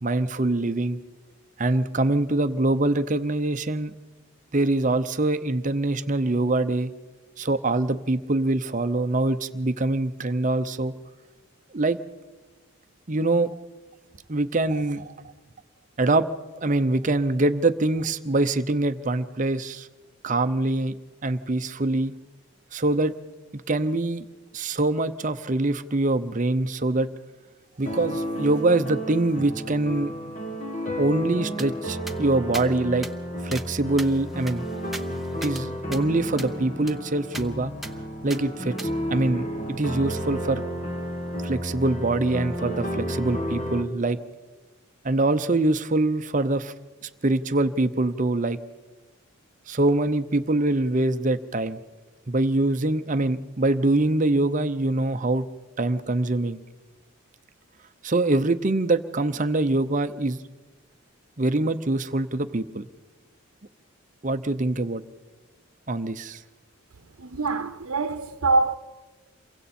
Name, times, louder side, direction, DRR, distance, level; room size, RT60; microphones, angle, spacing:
voice 1, 0.0-1.0 1.6-3.9 4.5-6.9 7.4-10.9 11.7-12.0 13.1-13.5 14.3-15.1 16.0-16.3 16.6-19.9 20.2-20.9 21.2-22.1 22.7-23.1 23.5-24.2 24.5-27.1 27.8-30.1 31.0-33.1 33.4-34.7 35.4-37.7 38.2-40.6 41.4-44.2 45.0-46.7 47.0-48.6 49.7-51.8 52.3-55.5 55.8-56.6 58.0-60.4 61.4-62.9 64.2-65.0 65.9-66.4, right 2 dB, 35° right, 0.7 m, -24 dB
sound 1, 27.8-43.8, equal, 35° left, 2.2 m, -32 dB
sound 2, 31.6-31.7 32.1-32.2 32.5-32.7 33.0-33.1 33.5-33.7 34.0-35.6 35.9-36.0 36.4-36.5 36.9-37.0 37.3-37.5 37.8-37.9 38.3-38.4 38.8-38.9, right 2 dB, ahead, 0.7 m, -38 dB
voice 2, 67.2-68.7, right 3 dB, 85° right, 0.8 m, -24 dB
28.0 x 23.5 x 4.3 m
head